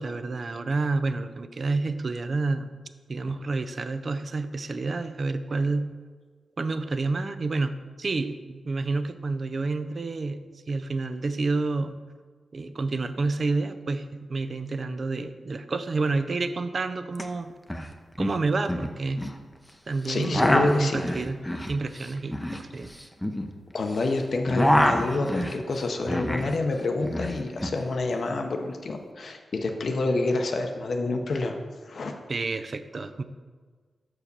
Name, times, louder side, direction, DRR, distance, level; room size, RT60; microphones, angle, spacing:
voice 1, 0.0-2.7 3.1-5.9 6.6-12.0 12.5-17.5 18.2-19.3 19.9-21.4 21.7-22.9 32.3-33.2, right 3 dB, 45° right, 10 dB, 0.4 m, -29 dB
sound 1, 17.1-17.2 17.5-17.9 18.2-19.4 20.0-24.0 24.3-26.6 26.8-27.8, equal, 10° left, 0.6 m, -26 dB
voice 2, 20.1-21.0 23.7-31.6 31.9-32.1, left 3 dB, 60° left, 4 dB, 0.7 m, -27 dB
5.8 x 4.8 x 6.6 m, 1.5 s
wide cardioid pair, 95°, 0 cm